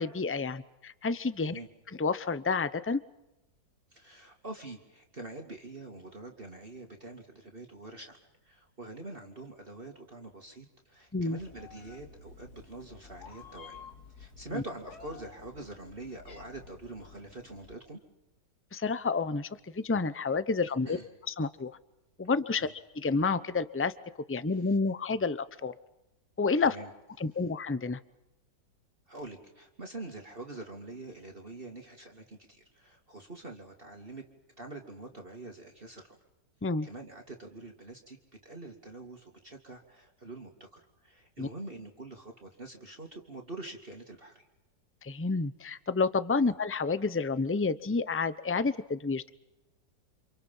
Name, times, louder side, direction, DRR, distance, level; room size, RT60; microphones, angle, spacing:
voice 1, 0.0-1.6 2.0-3.0 11.1-11.4 14.5-14.6 18.7-21.0 21.3-21.8 22.2-22.7 22.9-23.9 24.3-25.7 26.4-26.8 27.2-28.0 36.6-36.9 41.4-41.5 45.0-49.3, left 4 dB, 15° left, 14 dB, 0.4 m, -29 dB
voice 2, 3.9-8.2 8.4-13.8 14.1-18.0 20.8-21.1 22.6-22.7 26.6-26.9 29.1-34.2 34.6-36.2 36.8-38.2 38.4-44.5, right 2 dB, 30° right, 2 dB, 2.7 m, -45 dB
Meow, 11.4-17.7, left 5 dB, 60° left, 2.5 m, -52 dB
30.0 x 27.0 x 5.6 m, 0.92 s
omnidirectional pair, 1.9 m